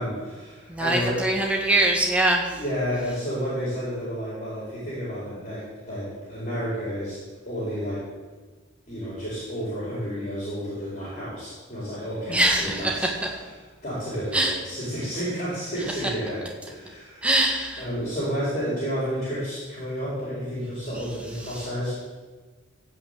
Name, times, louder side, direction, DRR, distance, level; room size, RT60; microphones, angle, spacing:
voice 1, 0.0-1.2 2.5-7.2 7.5-8.0 8.9-13.4 13.8-17.3 17.8-22.0, equal, 35° left, -8 dB, 4.5 m, -31 dB
voice 2, 0.7-2.5 12.3-13.1 14.3-14.5 17.2-17.8, right 1 dB, 5° right, -1 dB, 1.7 m, -22 dB
14.5 x 5.9 x 8.1 m, 1.3 s
head